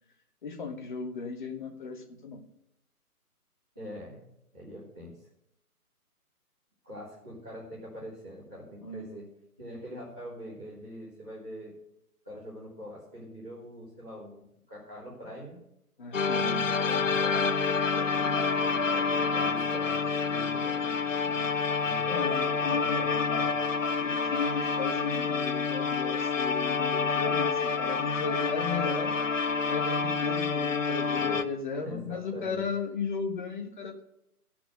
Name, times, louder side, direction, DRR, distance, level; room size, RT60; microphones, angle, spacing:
voice 1, 0.4-2.4 8.8-9.2 16.0-16.6 21.3-21.5 22.1-23.3 24.0-29.1 29.7-34.0, left 5 dB, 30° left, 4 dB, 1.3 m, -35 dB
voice 2, 3.7-4.2 4.5-5.1 6.8-9.2 9.6-11.7 12.2-14.4 14.7-15.6 16.3-21.0 21.8-22.3 22.6-23.6 31.2-31.4 31.7-32.7, equal, 5° right, -16 dB, 0.6 m, -43 dB
sound 1, 16.1-31.4, left 5 dB, 55° left, 0.8 m, -28 dB
14.0 x 6.1 x 6.4 m, 0.79 s
figure-of-eight pair, 145°, 45 cm